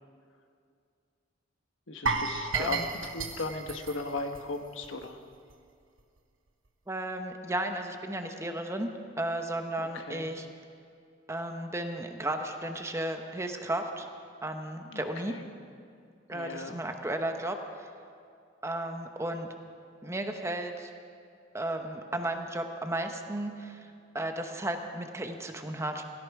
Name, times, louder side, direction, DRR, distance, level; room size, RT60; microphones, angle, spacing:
voice 1, 1.9-5.2 9.8-10.3 14.9-15.4 16.3-16.8, left 3 dB, 80° left, 5 dB, 1.2 m, -37 dB
sound 1, 2.1-5.1 5.3-5.5 6.0-6.1, right 4 dB, 85° right, 1.1 m, -33 dB
voice 2, 2.5-2.9 6.9-8.9 9.2-10.5 11.3-14.1 14.4-15.3 16.3-17.6 18.6-19.5 20.0-20.9 21.5-23.8 24.1-26.0, right 1 dB, 15° right, 5 dB, 0.9 m, -34 dB
16.5 x 16.5 x 4.8 m, 2.3 s
head